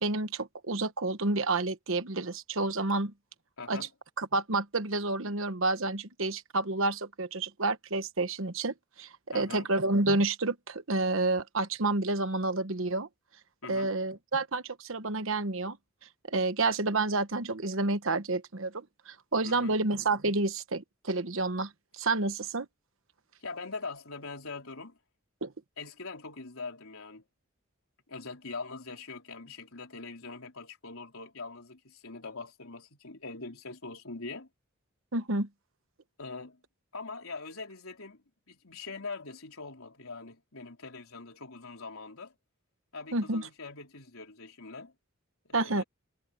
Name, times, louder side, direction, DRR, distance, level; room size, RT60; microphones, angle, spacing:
voice 1, 0.0-3.1 3.7-3.9 4.2-9.1 9.3-13.1 13.7-15.8 16.3-22.7 25.4-25.5 35.1-35.5 43.1-43.5 45.5-45.8, right 2 dB, 65° right, 1.2 m, -29 dB
voice 2, 3.6-3.9 9.3-9.7 13.6-14.0 19.4-19.8 23.4-25.0 25.8-27.2 28.1-34.5 36.2-36.6 36.9-42.3 42.9-44.9 45.5-45.8, left 3 dB, 80° left, 4.0 m, -42 dB
head